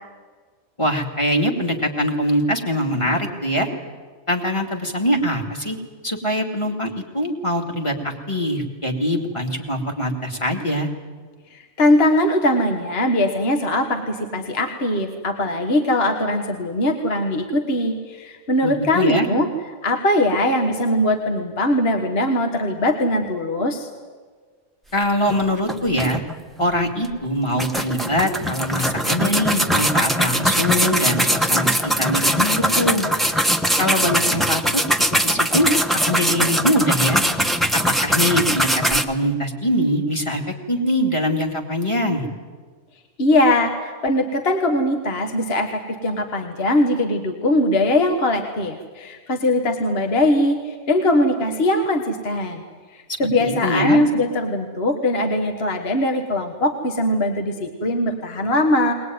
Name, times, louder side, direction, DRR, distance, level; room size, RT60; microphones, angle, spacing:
voice 1, 0.8-3.7 4.3-5.8 6.0-10.9 18.6-19.3 24.9-26.2 26.6-33.1 33.8-34.8 35.2-35.7 36.1-37.2 37.9-40.4 40.7-42.3 53.1-54.0, equal, 20° left, 2 dB, 2.4 m, -23 dB
voice 2, 11.5-19.5 19.8-23.9 43.2-52.6 52.9-58.9, left 1 dB, 45° left, 4 dB, 1.7 m, -21 dB
sound 1, 25.3-25.4 25.7-26.6 27.0-27.1 27.6-39.0, equal, ahead, 0.9 m, -21 dB
21.5 x 19.5 x 9.4 m, 1.5 s
omnidirectional pair, 1.4 m